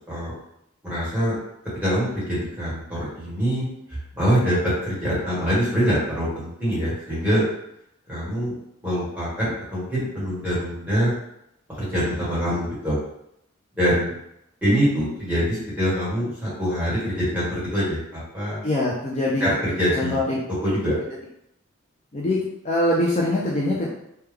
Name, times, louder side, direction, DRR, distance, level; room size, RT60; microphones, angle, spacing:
voice 1, 0.8-1.3 1.8-3.7 4.2-7.4 8.1-8.5 8.8-11.1 11.7-13.0 13.8-14.1 14.6-18.6 19.4-20.2 20.6-21.0, equal, 5° right, -10 dB, 1.4 m, -24 dB
voice 2, 18.6-19.4 19.9-20.4 22.1-23.9, left 1 dB, 30° left, -5 dB, 0.4 m, -23 dB
3.4 x 2.3 x 3.3 m, 0.79 s
head